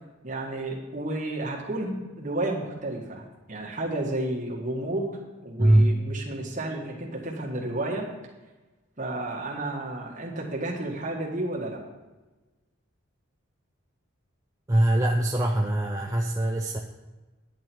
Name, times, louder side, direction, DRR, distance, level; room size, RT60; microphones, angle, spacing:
voice 1, 0.2-5.1 5.4-8.1 9.0-11.8, right 1 dB, 35° right, -2 dB, 1.9 m, -31 dB
voice 2, 5.6-5.9 14.7-16.8, right 1 dB, 15° right, 0 dB, 0.6 m, -22 dB
10.0 x 8.8 x 4.6 m, 1.2 s
head